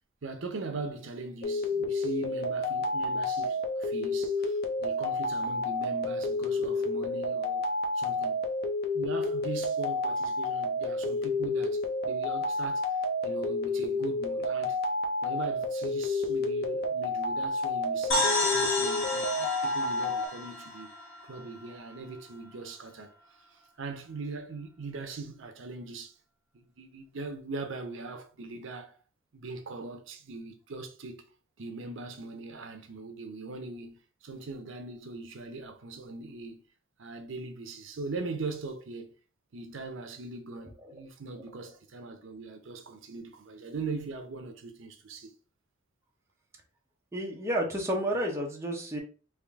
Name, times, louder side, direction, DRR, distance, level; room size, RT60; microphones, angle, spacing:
voice 1, 0.2-7.7 7.9-8.4 8.9-14.8 15.2-20.9 21.2-26.1 26.5-29.0 29.3-31.2 31.6-36.6 37.0-39.1 39.5-45.3, right 3 dB, 65° right, 0.6 m, -40 dB
sound 1, 1.4-20.3, left 2 dB, 50° left, 0.6 m, -30 dB
sound 2, 18.1-21.7, left 2 dB, 65° left, 1.7 m, -31 dB
voice 2, 47.1-49.0, right 1 dB, 15° right, 0.7 m, -30 dB
3.5 x 2.5 x 3.4 m
head